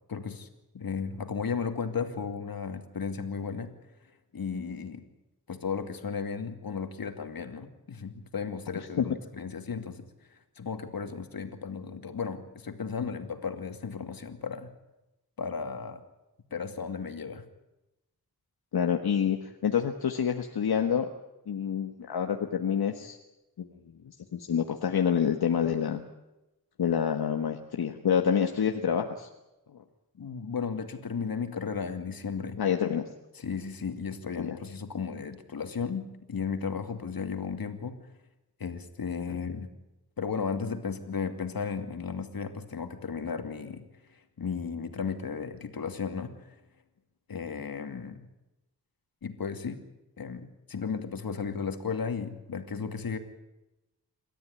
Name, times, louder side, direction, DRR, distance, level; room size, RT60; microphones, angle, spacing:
voice 1, 0.1-0.5 0.7-3.7 4.3-5.1 5.5-10.1 10.6-14.7 15.4-16.0 16.5-17.4 30.2-32.6 33.3-38.0 38.6-39.7 40.2-43.8 44.4-46.5 47.3-48.3 49.2-49.8 50.2-53.2, left 5 dB, 65° left, 7 dB, 2.6 m, -34 dB
voice 2, 8.7-9.1 13.0-13.1 18.7-21.1 21.5-23.2 23.6-26.0 26.8-29.3 32.6-33.1 34.4-34.6 39.3-39.4, left 8 dB, 85° left, 4 dB, 1.5 m, -28 dB
27.5 x 13.5 x 9.7 m, 0.97 s
wide cardioid pair, 80°, 37 cm